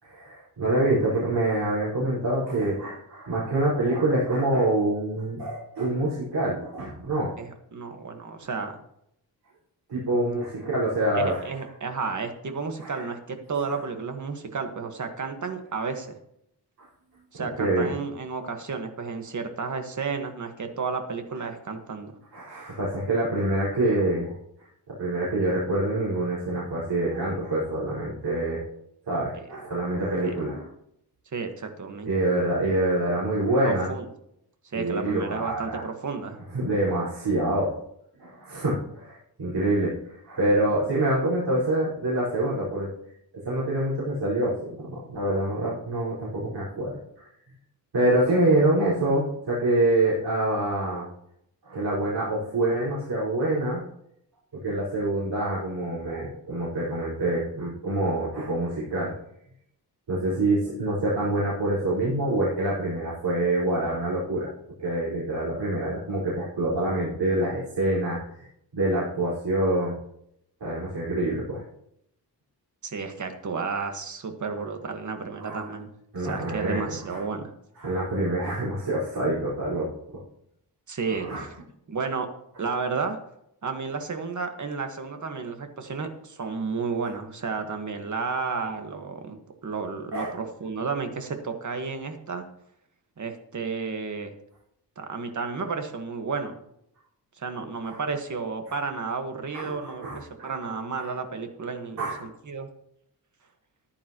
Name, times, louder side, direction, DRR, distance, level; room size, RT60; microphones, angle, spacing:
voice 1, 0.0-7.3 9.9-11.4 12.8-13.1 17.4-17.9 22.3-28.6 29.1-30.7 32.0-33.9 34.7-35.8 36.5-37.7 38.2-42.9 43.4-47.3 47.9-51.1 51.6-53.8 54.6-59.1 60.1-64.5 64.8-68.2 68.7-69.9 70.6-71.6 75.4-75.6 76.1-77.2 77.8-80.2 81.1-81.4 90.1-90.3 97.8-98.0 99.5-100.5 100.9-101.0 102.0-102.3, right 1 dB, 80° right, -9 dB, 4.9 m, -26 dB
voice 2, 7.4-8.8 11.2-16.1 17.3-22.2 30.2-30.3 31.3-32.1 33.6-34.1 34.6-36.4 72.8-75.9 76.2-77.5 80.9-81.5 81.9-82.3 82.6-83.2 83.6-89.4 89.6-92.4 93.2-94.3 95.0-96.6 97.4-102.7, right 5 dB, 45° right, 6 dB, 1.6 m, -32 dB
14.5 x 10.5 x 3.0 m, 0.75 s
wide cardioid pair, 125°, 40 cm